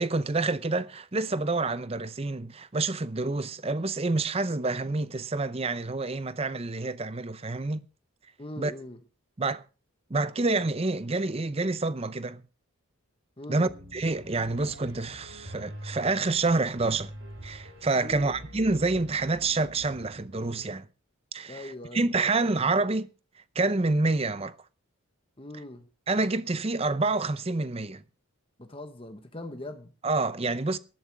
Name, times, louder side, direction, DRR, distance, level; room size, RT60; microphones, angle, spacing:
voice 1, 0.0-7.8 8.6-8.7 9.4-9.6 10.1-12.4 13.5-17.1 17.4-20.9 21.3-23.1 23.5-24.5 26.1-28.0 30.0-30.8, right 3 dB, 25° right, 0.6 m, -28 dB
voice 2, 8.4-9.0 13.4-13.7 18.0-18.4 21.5-22.1 25.4-25.8 28.6-29.9, left 1 dB, 25° left, 1.2 m, -41 dB
Piano, 13.7-20.7, equal, 60° right, 4.0 m, -45 dB
18.5 x 12.0 x 3.5 m
head